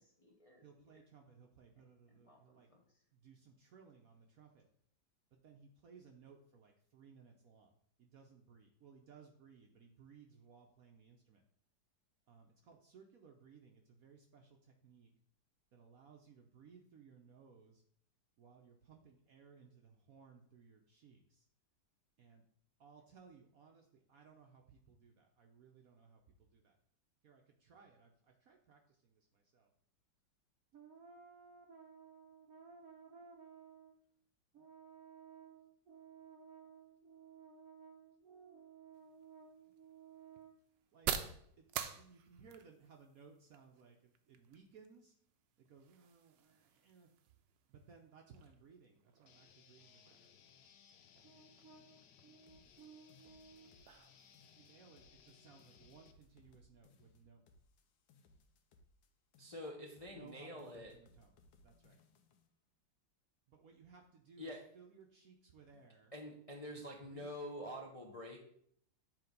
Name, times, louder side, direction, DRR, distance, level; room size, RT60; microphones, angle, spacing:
voice 1, 0.0-1.0 1.8-3.1, left 1 dB, 25° left, 0 dB, 0.8 m, -69 dB
voice 2, 0.6-2.7 3.2-4.6 5.3-7.7 8.0-11.4 12.3-15.1 15.7-17.8 18.4-21.5 22.2-22.4 22.8-26.8 27.2-29.7 30.7-34.0 34.5-40.6 40.9-41.1 41.6-41.7 41.9-45.1 45.6-47.1 47.7-50.4 51.2-53.8 54.5-57.4 60.1-61.3 61.6-62.0 63.5-66.1 67.0-67.7, right 6 dB, 60° right, 2 dB, 1.0 m, -60 dB
sound 1, 38.9-56.5, right 9 dB, 85° right, 1.3 m, -50 dB
sound 2, 49.3-56.1, left 8 dB, 70° left, 1.0 m, -64 dB
sound 3, 52.5-54.1 54.3-55.3 55.6-59.1 59.3-60.3 60.6-62.5, left 3 dB, 90° left, 1.5 m, -68 dB
voice 3, 59.4-60.9 64.4-64.6 66.1-68.4, left 1 dB, 50° left, 0 dB, 0.4 m, -46 dB
8.9 x 3.3 x 5.1 m, 0.66 s
omnidirectional pair, 2.0 m